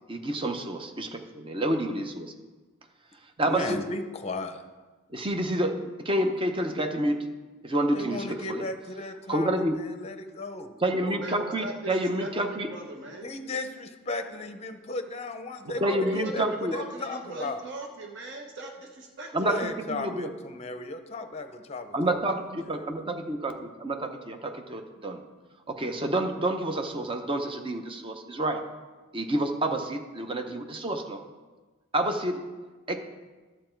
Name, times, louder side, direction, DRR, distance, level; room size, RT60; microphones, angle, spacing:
voice 1, 0.1-2.3 3.4-3.8 5.1-7.2 7.6-8.6 9.3-9.7 10.8-12.7 15.8-16.8 19.3-20.3 21.9-25.2 25.7-28.6 29.1-31.2 31.9-32.4 32.9-33.0, right 1 dB, 25° right, 5 dB, 0.7 m, -28 dB
voice 2, 3.4-4.6 7.9-10.7 13.2-16.4 16.7-17.6 19.4-22.2, left 2 dB, 30° left, 7 dB, 0.7 m, -35 dB
voice 3, 10.9-13.3 15.6-19.7, right 2 dB, 55° right, 1 dB, 1.1 m, -39 dB
11.0 x 7.7 x 4.5 m, 1.3 s
head